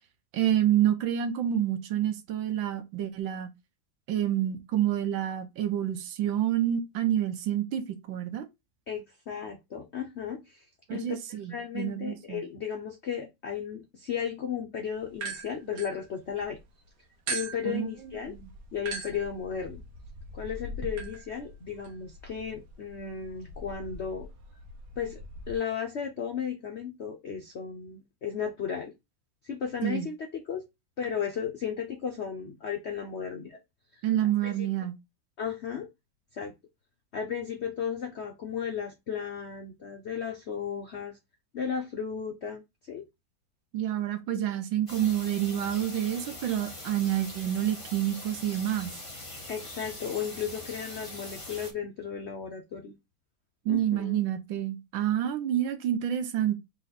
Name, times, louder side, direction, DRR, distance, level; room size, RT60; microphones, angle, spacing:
voice 1, 0.3-3.5 4.1-8.5 10.9-12.4 17.6-17.9 18.3-18.5 29.8-30.1 34.0-34.9 43.7-48.9 53.6-56.6, right 11 dB, 80° right, 1.5 m, -28 dB
voice 2, 8.9-16.6 17.3-18.4 18.7-19.8 20.3-24.3 25.0-25.2 25.5-28.9 29.4-30.6 31.0-33.6 33.9-34.0 34.4-34.7 35.4-35.9 36.3-36.5 37.1-41.2 41.5-42.6 42.9-43.0 49.5-52.9 53.7-54.2, left 7 dB, 80° left, 0.6 m, -35 dB
sound 1, 15.1-16.6 17.3-25.6, right 2 dB, 65° right, 1.4 m, -41 dB
sound 2, 44.9-51.7, left 1 dB, 20° left, 1.3 m, -42 dB
4.2 x 3.0 x 3.9 m
omnidirectional pair, 2.1 m